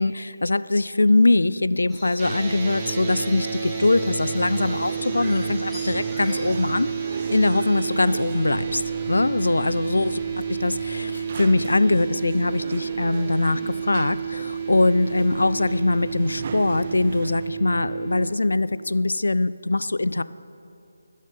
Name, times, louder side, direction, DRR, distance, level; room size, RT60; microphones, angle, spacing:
voice 1, 0.0-6.9 7.3-10.2 10.6-20.2, left 2 dB, 80° left, 16 dB, 0.4 m, -22 dB
sound 1, 1.9-7.6, equal, ahead, 1.7 m, -43 dB
sound 2, 2.2-18.3, right 6 dB, 20° right, 1.0 m, -30 dB
sound 3, 4.6-17.5, right 5 dB, 40° right, 0.5 m, -39 dB
14.5 x 6.4 x 5.6 m, 2.6 s
figure-of-eight pair, 160°, 0 cm